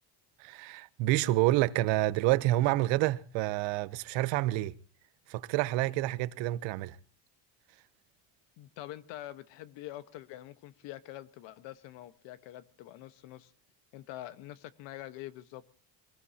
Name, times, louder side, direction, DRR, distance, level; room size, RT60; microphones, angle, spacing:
voice 1, 0.4-4.7 5.3-7.0, right 17 dB, 90° right, 0.9 m, -28 dB
voice 2, 8.6-13.5 13.9-15.6, left 14 dB, 80° left, 1.4 m, -45 dB
24.5 x 19.0 x 2.9 m
cardioid pair, 160°, 43 cm